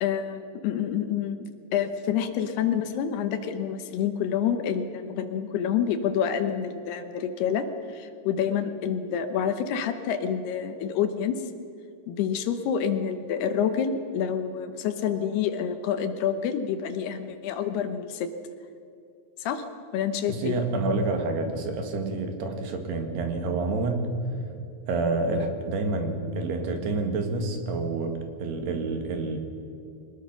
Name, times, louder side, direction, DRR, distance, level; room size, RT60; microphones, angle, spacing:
voice 1, 0.0-11.4 12.1-18.3 19.4-19.6 19.9-20.6, left 8 dB, 75° left, 9 dB, 2.8 m, -28 dB
voice 2, 20.3-24.1 24.9-29.4, right 3 dB, 70° right, 5 dB, 3.8 m, -28 dB
23.5 x 20.0 x 6.0 m, 2.5 s
omnidirectional pair, 5.1 m